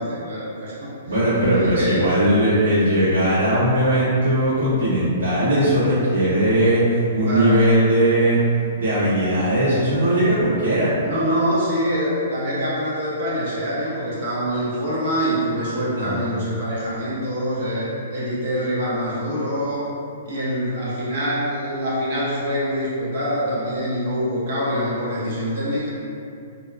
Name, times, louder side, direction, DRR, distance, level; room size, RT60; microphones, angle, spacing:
voice 1, 0.0-1.0 1.4-2.1 7.3-7.6 11.0-19.9 20.2-25.9, equal, 55° right, -8 dB, 0.9 m, -25 dB
voice 2, 1.1-8.4 8.7-10.9 16.0-16.2, right 1 dB, 90° right, -13 dB, 1.3 m, -19 dB
2.7 x 2.4 x 2.2 m, 2.6 s
hypercardioid pair, 155°, 0 cm